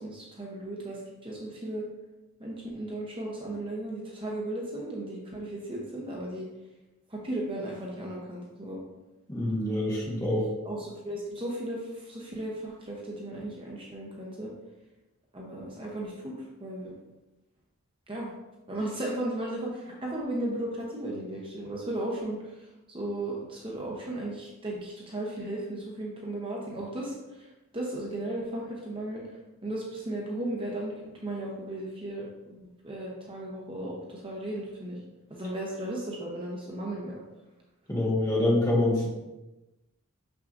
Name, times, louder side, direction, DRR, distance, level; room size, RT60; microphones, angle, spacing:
voice 1, 0.0-1.8 2.4-6.5 7.1-8.8 10.6-14.5 15.3-16.9 18.1-18.3 18.7-29.2 29.6-30.9 31.2-32.6 32.8-35.0 35.3-37.2, right 1 dB, 25° right, -3 dB, 0.8 m, -35 dB
voice 2, 9.3-10.5 37.9-39.1, left 1 dB, 15° left, -4 dB, 1.3 m, -26 dB
6.4 x 5.9 x 2.6 m, 1.0 s
head